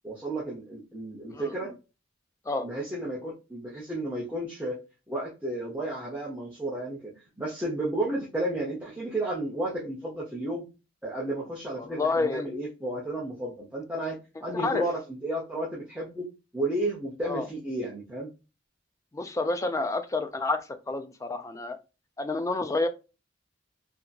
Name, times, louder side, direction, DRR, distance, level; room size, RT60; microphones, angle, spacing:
voice 1, 0.0-1.7 2.6-4.8 5.1-10.6 11.0-18.3, right 1 dB, 5° right, -5 dB, 0.8 m, -32 dB
voice 2, 1.3-1.7 2.5-2.7 11.8-12.5 14.4-14.8 17.2-17.5 19.1-21.8 22.2-22.9, left 3 dB, 15° left, 9 dB, 0.3 m, -29 dB
2.8 x 2.6 x 2.4 m, 0.29 s
head